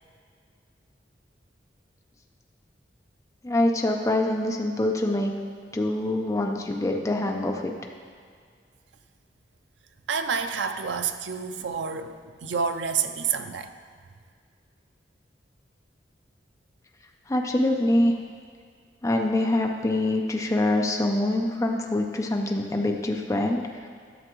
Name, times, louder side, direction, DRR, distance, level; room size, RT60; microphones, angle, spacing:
voice 1, 3.4-5.3 5.7-7.7 17.3-18.1 19.0-23.6, left 1 dB, 20° left, 2 dB, 0.5 m, -24 dB
voice 2, 10.1-13.7, right 6 dB, 80° right, 8 dB, 0.5 m, -29 dB
11.0 x 6.9 x 3.0 m, 2.1 s
head